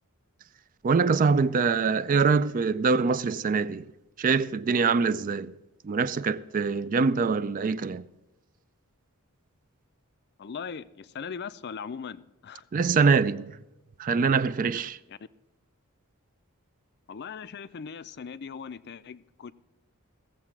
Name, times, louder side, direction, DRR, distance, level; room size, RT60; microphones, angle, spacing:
voice 1, 0.8-3.9 4.2-5.5 5.8-8.0 12.7-13.6 14.0-15.0, right 5 dB, 35° right, 0.3 m, -24 dB
voice 2, 10.4-12.7 15.1-15.2 17.1-19.5, left 6 dB, 50° left, 0.4 m, -39 dB
16.0 x 7.3 x 5.9 m
head